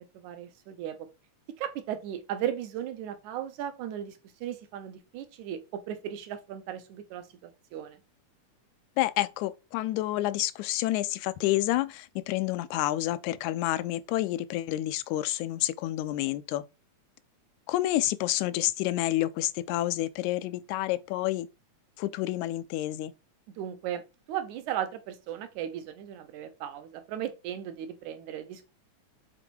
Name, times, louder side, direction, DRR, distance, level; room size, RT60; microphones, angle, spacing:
voice 1, 0.1-1.1 1.6-8.0 23.6-24.0 24.3-28.7, right 10 dB, 80° right, 2.4 m, -36 dB
voice 2, 9.0-16.6 17.7-21.5 22.0-23.1, left 15 dB, 80° left, 2.0 m, -29 dB
7.7 x 4.0 x 4.5 m
omnidirectional pair, 3.4 m